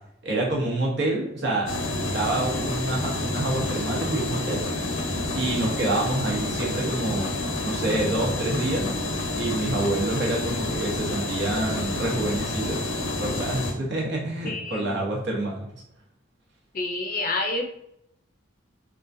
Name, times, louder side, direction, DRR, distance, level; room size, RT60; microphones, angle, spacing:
voice 1, 0.2-1.7 2.1-4.7 5.3-8.9 9.4-12.9 13.2-15.6, right 2 dB, 60° right, -3 dB, 1.0 m, -27 dB
sound 1, 1.6-13.7, left 2 dB, 85° left, 0.6 m, -29 dB
voice 2, 14.4-14.9 16.7-17.6, left 2 dB, 45° left, 3 dB, 0.5 m, -28 dB
3.7 x 2.3 x 2.6 m, 0.77 s
head